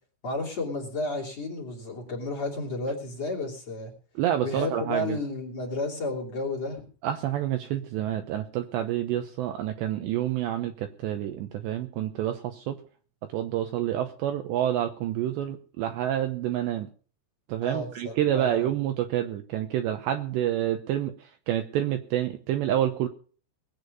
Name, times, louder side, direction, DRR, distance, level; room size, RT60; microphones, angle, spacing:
voice 1, 0.2-3.9 4.4-6.8 17.6-18.7, left 2 dB, 35° left, -3 dB, 3.2 m, -32 dB
voice 2, 4.2-5.2 7.0-12.8 13.3-16.9 17.5-23.1, right 11 dB, 75° right, 6 dB, 2.7 m, -28 dB
21.0 x 8.7 x 5.4 m, 0.41 s
omnidirectional pair, 5.9 m